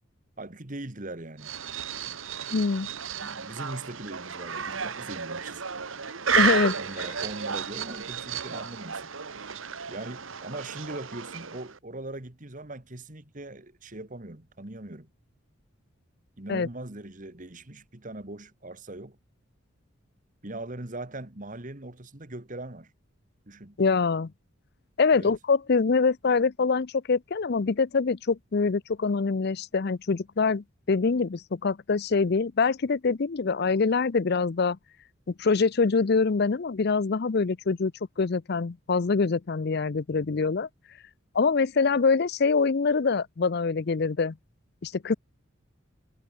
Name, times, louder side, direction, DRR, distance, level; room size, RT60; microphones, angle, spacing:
voice 1, 0.4-1.5 2.8-5.7 6.8-9.1 9.9-15.1 16.4-19.2 20.4-22.9 23.5-23.8 25.1-25.4, right 2 dB, 40° right, 1.9 m, -40 dB
sound 1, 1.4-11.8, right 7 dB, 75° right, 1.7 m, -32 dB
voice 2, 2.5-2.9 6.4-6.8 16.5-16.7 23.8-24.3 25.0-34.8 35.4-37.9 38.2-40.7 41.3-44.4 44.8-45.1, left 4 dB, 50° left, 0.5 m, -24 dB
head